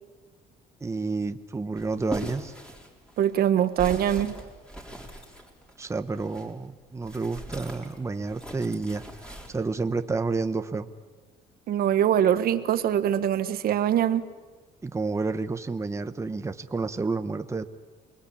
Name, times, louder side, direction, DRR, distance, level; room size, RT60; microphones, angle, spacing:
voice 1, 0.8-2.5 5.8-9.0 9.5-10.9 14.8-17.7, right 3 dB, 15° right, 8 dB, 1.1 m, -30 dB
sound 1, 1.7-6.5 7.0-9.5, equal, 5° left, 4.1 m, -40 dB
voice 2, 3.2-4.4 11.7-14.2, right 10 dB, 65° right, 11 dB, 1.3 m, -23 dB
29.0 x 21.0 x 8.6 m, 1.3 s
cardioid pair, 110°, 17 cm